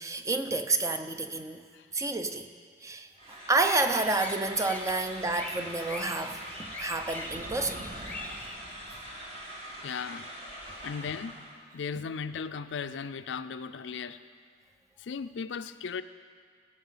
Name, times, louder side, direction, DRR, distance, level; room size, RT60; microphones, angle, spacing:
voice 1, 0.0-1.6 1.9-2.5 2.8-3.1 3.5-7.9, right 3 dB, 15° right, 7 dB, 0.5 m, -29 dB
sound 1, 3.2-11.6, equal, 35° right, 2.0 m, -43 dB
sound 2, 3.6-8.6, left 2 dB, 10° left, 0.9 m, -42 dB
sound 3, 7.2-9.4, right 1 dB, 65° right, 2.1 m, -46 dB
voice 2, 9.8-10.3 10.8-11.4 11.7-14.2 15.0-16.0, left 6 dB, 75° left, 12 dB, 0.4 m, -36 dB
17.5 x 6.5 x 5.6 m, 2.1 s
head